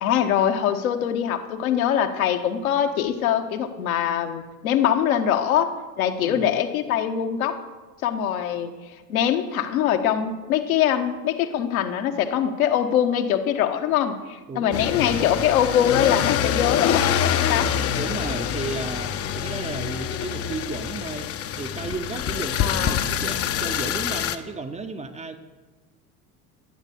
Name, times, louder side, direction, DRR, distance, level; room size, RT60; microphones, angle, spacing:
voice 1, 0.0-5.7 6.0-7.6 8.0-17.7 22.6-23.1, left 9 dB, 60° left, 6 dB, 1.4 m, -23 dB
voice 2, 14.5-15.0 17.5-17.6 17.9-21.3 21.6-25.4, right 4 dB, 15° right, 7 dB, 0.8 m, -34 dB
sound 1, 14.7-24.4, left 9 dB, 30° left, 0.9 m, -25 dB
13.0 x 9.2 x 7.0 m, 1.3 s
figure-of-eight pair, 75°, 47 cm